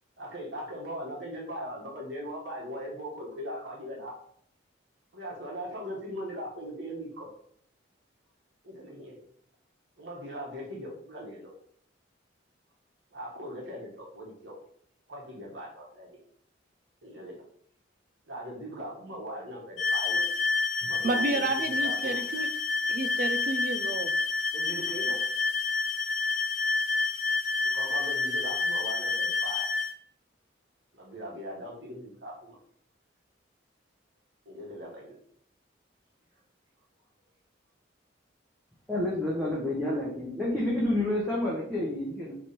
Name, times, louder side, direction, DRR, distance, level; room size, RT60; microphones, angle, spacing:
voice 1, 0.2-4.1 5.1-7.3 8.6-9.2 10.0-11.5 13.1-14.5 15.1-16.1 17.0-17.3 18.3-20.3 20.8-21.4 21.8-22.2 24.5-25.2 27.7-29.7 30.9-32.6 34.4-35.2, equal, 70° right, -3 dB, 1.3 m, -39 dB
sound 1, 19.8-29.9, left 3 dB, 85° left, 1.3 m, -29 dB
voice 2, 20.8-22.5 22.9-24.2, right 3 dB, 45° right, 9 dB, 0.4 m, -31 dB
voice 3, 38.9-42.3, left 1 dB, ahead, -7 dB, 0.9 m, -29 dB
3.4 x 3.2 x 4.2 m, 0.64 s
head